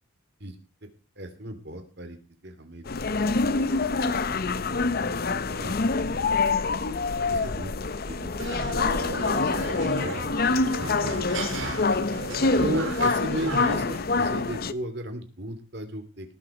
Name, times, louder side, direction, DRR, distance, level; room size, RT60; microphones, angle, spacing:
voice 1, 1.2-2.2 2.4-2.8 3.2-4.7 5.0-6.4 6.7-6.8 7.3-7.7 8.1-11.8 12.6-16.3, right 1 dB, 60° right, 7 dB, 2.9 m, -37 dB
sound 1, 2.9-14.7, left 3 dB, 50° left, 0.7 m, -26 dB
sound 2, 8.4-14.0, right 2 dB, 75° right, 2.9 m, -35 dB
18.5 x 7.4 x 5.0 m, 0.33 s
head